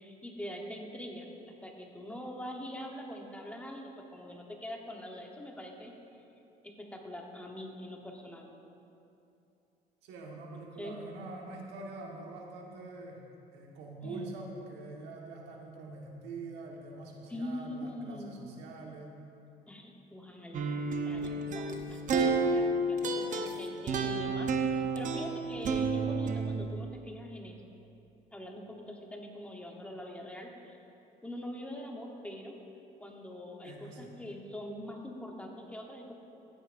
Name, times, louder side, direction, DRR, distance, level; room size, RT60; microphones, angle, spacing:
voice 1, 0.0-5.9 6.8-8.5 10.8-11.0 14.0-14.3 17.3-18.4 19.7-27.5 28.3-30.8 31.2-32.5 33.0-36.1, left 1 dB, 5° left, 0 dB, 1.0 m, -43 dB
voice 2, 10.0-13.2 13.5-19.1 33.6-34.1, right 3 dB, 90° right, -1 dB, 1.5 m, -45 dB
sound 1, 20.5-26.7, right 3 dB, 50° right, 0.8 m, -30 dB
14.5 x 8.8 x 2.6 m, 2.8 s
cardioid pair, 110°, 17 cm